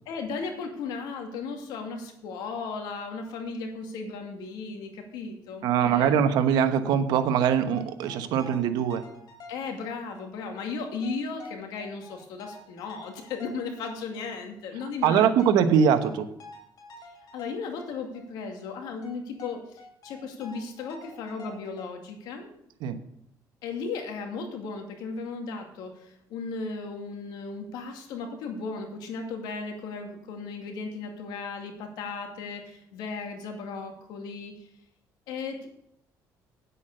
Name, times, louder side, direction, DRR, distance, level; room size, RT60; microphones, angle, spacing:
voice 1, 0.1-6.2 9.5-15.5 17.3-19.6 20.0-22.5 23.6-34.5 35.3-35.7, left 4 dB, 85° left, 3 dB, 2.3 m, -36 dB
voice 2, 5.6-9.0 15.0-16.3 22.8-23.0, right 8 dB, 85° right, 9 dB, 1.1 m, -22 dB
sound 1, 7.1-10.3 10.5-10.6 11.0-14.6 15.0-18.3 18.5-18.6 19.0-21.9, left 2 dB, 60° left, 3.3 m, -48 dB
9.4 x 8.3 x 6.6 m, 0.74 s
cardioid pair, 105°, 7 cm